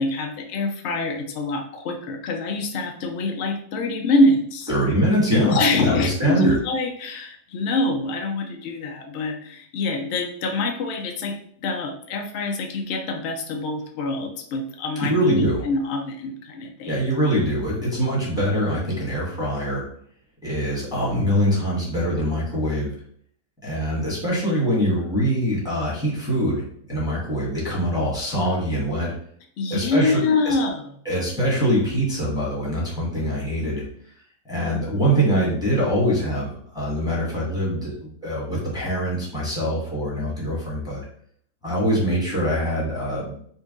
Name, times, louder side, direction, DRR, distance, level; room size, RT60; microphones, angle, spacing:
voice 1, 0.0-4.7 5.4-17.0 29.6-30.9, left 2 dB, 85° left, 4 dB, 0.6 m, -25 dB
voice 2, 4.7-5.6 5.8-6.6 15.0-15.6 16.8-19.8 20.4-22.9 23.6-26.6 26.9-29.1 29.7-30.5 31.0-33.8 34.5-41.0 41.6-43.4, equal, 5° right, -6 dB, 1.3 m, -23 dB
3.9 x 2.6 x 3.7 m, 0.62 s
omnidirectional pair, 1.8 m